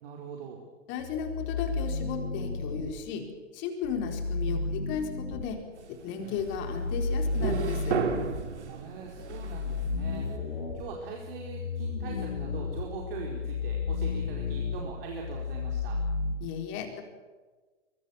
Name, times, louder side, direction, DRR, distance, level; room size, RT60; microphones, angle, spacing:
voice 1, 0.0-0.7 8.6-16.0, right 5 dB, 50° right, 0 dB, 4.6 m, -42 dB
voice 2, 0.9-3.3 3.5-5.6 5.9-8.0 16.4-17.0, left 6 dB, 30° left, 5 dB, 4.4 m, -35 dB
sound 1, 1.0-2.9 3.8-5.5 6.4-8.4 9.1-16.3, left 4 dB, 70° left, 5.5 m, -33 dB
sound 2, 5.6-10.3, right 5 dB, 65° right, 3.3 m, -34 dB
24.5 x 23.5 x 7.2 m, 1.3 s
figure-of-eight pair, 120°, 37 cm